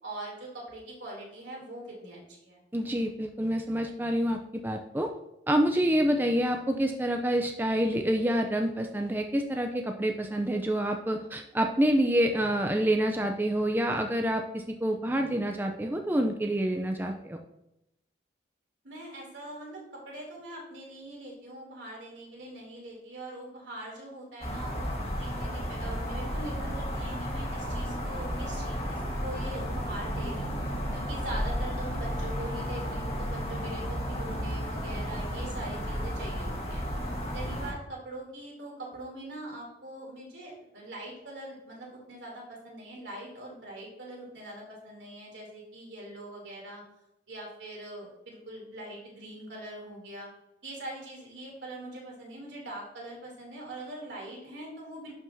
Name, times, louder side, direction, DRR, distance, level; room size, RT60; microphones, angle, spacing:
voice 1, 0.0-2.6 18.8-36.8 37.3-46.8 47.3-50.3 50.6-55.1, right 1 dB, 85° right, -2 dB, 2.9 m, -42 dB
voice 2, 2.7-5.1 5.5-17.4, right 1 dB, 10° right, 4 dB, 0.4 m, -27 dB
sound 1, 24.4-37.7, equal, 35° left, 1.5 m, -33 dB
11.5 x 4.9 x 2.7 m, 0.86 s
head